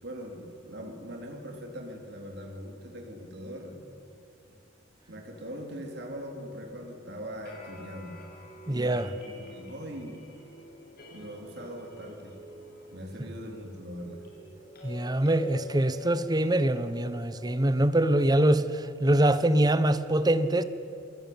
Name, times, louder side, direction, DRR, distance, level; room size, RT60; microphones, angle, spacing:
voice 1, 0.0-3.8 5.1-8.2 8.6-10.2 11.1-12.4 12.9-14.2, equal, 60° right, 3.5 m, -41 dB
sound 1, 5.2-17.8, left 3 dB, 50° left, 7.1 m, -49 dB
voice 2, 8.7-9.1 14.8-20.6, right 1 dB, 20° right, 1.0 m, -24 dB
28.5 x 20.5 x 9.5 m
head